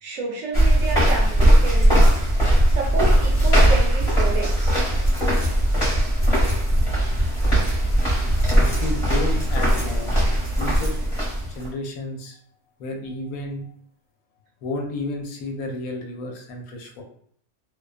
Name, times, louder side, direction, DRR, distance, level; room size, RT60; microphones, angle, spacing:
voice 1, 0.0-2.1 2.6-4.8, right 3 dB, 70° right, 0 dB, 0.9 m, -30 dB
sound 1, 0.5-11.7, right 1 dB, 30° left, 0.9 m, -19 dB
voice 2, 8.6-10.2 10.4-11.0 11.5-12.4 12.8-13.7 14.6-17.0, left 2 dB, 75° left, 2 dB, 1.0 m, -32 dB
2.5 x 2.2 x 2.3 m, 0.62 s
omnidirectional pair, 1.6 m